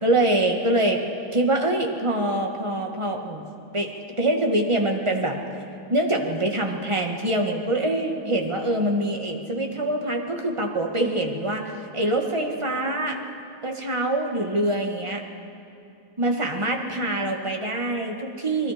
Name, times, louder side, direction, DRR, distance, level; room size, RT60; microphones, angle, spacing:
voice 1, 0.0-1.0 1.3-3.4 3.7-3.9 4.2-5.4 5.9-11.6 11.9-13.2 13.6-15.2 16.2-18.7, right 1 dB, 15° right, 2 dB, 1.6 m, -24 dB
28.0 x 21.5 x 5.1 m, 2.7 s
omnidirectional pair, 2.3 m